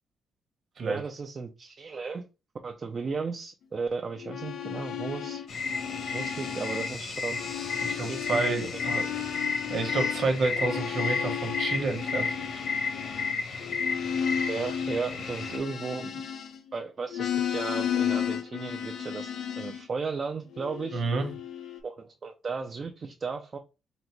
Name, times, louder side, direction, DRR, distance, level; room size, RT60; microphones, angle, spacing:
voice 1, 0.8-2.2 2.6-5.4 6.1-7.4 8.1-8.5 14.5-16.2 16.7-21.0 21.8-23.6, right 4 dB, 30° right, 4 dB, 0.4 m, -35 dB
sound 1, 4.2-7.0 7.3-16.7 17.1-19.9 20.5-21.8, left 8 dB, 80° left, 0.7 m, -34 dB
sound 2, 5.5-15.6, left 4 dB, 60° left, 1.1 m, -33 dB
voice 2, 7.8-9.1 9.7-12.4 20.9-21.3, right 3 dB, 45° right, 4 dB, 1.0 m, -29 dB
3.8 x 2.1 x 4.4 m, 0.29 s
cardioid pair, 170°, 0 cm